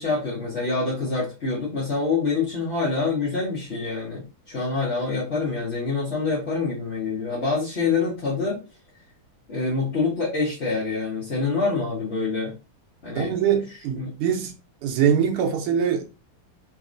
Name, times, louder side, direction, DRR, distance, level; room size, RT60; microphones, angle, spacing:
voice 1, 0.0-8.6 9.5-12.5 13.0-13.3 14.0-14.1, left 4 dB, 40° left, 1.1 m, -26 dB
voice 2, 13.1-14.5 14.8-16.0, right 8 dB, 85° right, 1.7 m, -23 dB
4.0 x 2.9 x 2.5 m
omnidirectional pair, 2.4 m